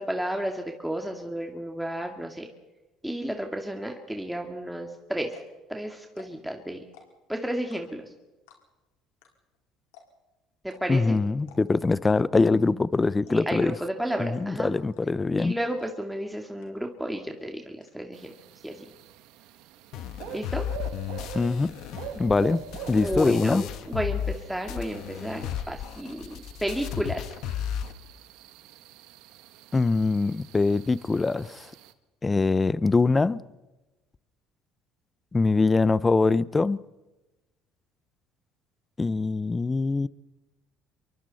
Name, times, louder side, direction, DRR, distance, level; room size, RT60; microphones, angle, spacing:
voice 1, 0.0-2.5 3.0-5.4 5.7-6.8 7.3-8.1 10.6-11.2 13.3-14.8 15.4-18.3 18.6-18.9 20.3-20.7 22.9-27.2, right 1 dB, 5° right, 2.3 m, -32 dB
sound 1, 4.8-4.9 5.2-5.6 6.1-6.5 6.8-7.3 7.7-8.1 8.5-8.8 9.2-9.3 9.5-9.6 9.9-10.3 10.7-10.8 11.4-11.9 12.3-12.6 12.8-12.9 13.3-13.6 14.1-14.4 14.9-15.3 15.8-15.9 16.2-16.3 16.6-17.0 17.3-17.9, left 7 dB, 90° left, 4.6 m, -53 dB
voice 2, 10.9-13.7 14.2-15.6 21.3-21.7 22.2-22.6 22.9-23.6 29.7-31.7 32.2-33.4 35.3-36.8 39.0-40.1, left 3 dB, 20° left, 0.7 m, -23 dB
sound 2, 18.1-31.9, right 10 dB, 75° right, 1.4 m, -45 dB
sound 3, 19.9-24.4 24.7-27.9, left 10 dB, 70° left, 1.3 m, -34 dB
27.5 x 23.5 x 4.3 m
supercardioid pair, 80°, 0 cm